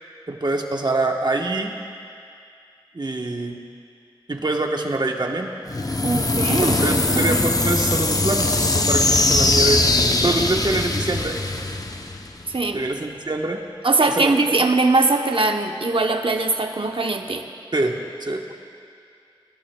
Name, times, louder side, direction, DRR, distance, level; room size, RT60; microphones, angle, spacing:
voice 1, 0.3-1.7 2.9-3.6 4.3-5.5 6.6-10.0 10.2-11.4 12.7-13.6 14.1-14.3 17.7-18.4, right 2 dB, 50° right, 2 dB, 1.1 m, -25 dB
sound 1, 5.7-12.6, left 2 dB, 40° left, 0.7 m, -21 dB
voice 2, 6.0-6.8 7.1-7.4 12.5-12.8 13.8-17.5, right 3 dB, 70° right, 4 dB, 0.8 m, -21 dB
25.5 x 12.0 x 2.3 m, 2.4 s
wide cardioid pair, 50°, 9 cm